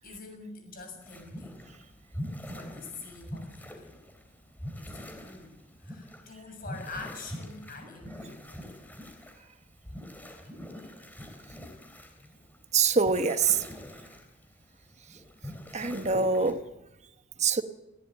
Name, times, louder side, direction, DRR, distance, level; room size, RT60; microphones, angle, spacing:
voice 1, 0.0-1.6 2.5-3.9 4.8-8.7, left 3 dB, 45° left, 6.8 m, -45 dB
sound 1, 1.0-16.5, equal, 10° left, 3.1 m, -44 dB
voice 2, 12.7-13.6 15.7-16.6 17.4-17.6, right 5 dB, 35° right, 1.0 m, -24 dB
20.0 x 16.5 x 9.2 m
head